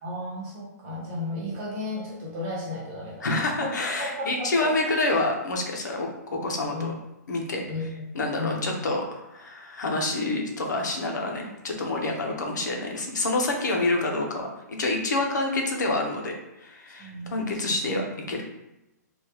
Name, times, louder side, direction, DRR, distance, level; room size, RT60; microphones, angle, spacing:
voice 1, 0.0-5.0 6.7-6.9 7.6-8.0 8.4-8.7 12.0-12.1 17.0-17.8 18.2-18.3, left 2 dB, 20° right, -6 dB, 1.0 m, -34 dB
voice 2, 3.2-6.9 7.3-7.6 8.1-18.4, left 2 dB, 85° left, 1 dB, 0.8 m, -27 dB
3.5 x 2.3 x 2.9 m, 0.94 s
hypercardioid pair, 175°, 9 cm